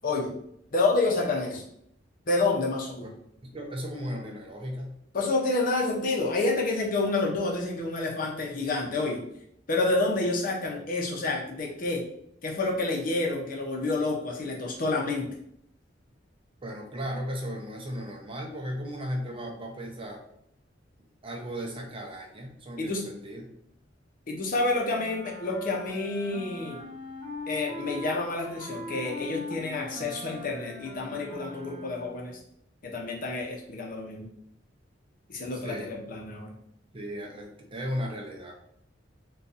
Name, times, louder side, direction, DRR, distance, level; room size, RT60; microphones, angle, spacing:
voice 1, 0.0-0.3 0.7-1.6 2.3-3.1 5.1-9.2 9.7-12.0 12.4-15.3 22.8-23.0 24.3-26.8 27.5-32.4 32.8-34.3 35.3-36.5, left 2 dB, 50° left, 0 dB, 0.6 m, -28 dB
voice 2, 3.4-5.0 16.6-20.2 21.2-23.5 35.5-35.9 36.9-38.6, equal, 30° right, 0 dB, 0.6 m, -36 dB
sound 1, 24.9-32.3, left 2 dB, 10° left, 1.0 m, -41 dB
2.6 x 2.3 x 3.9 m, 0.71 s
head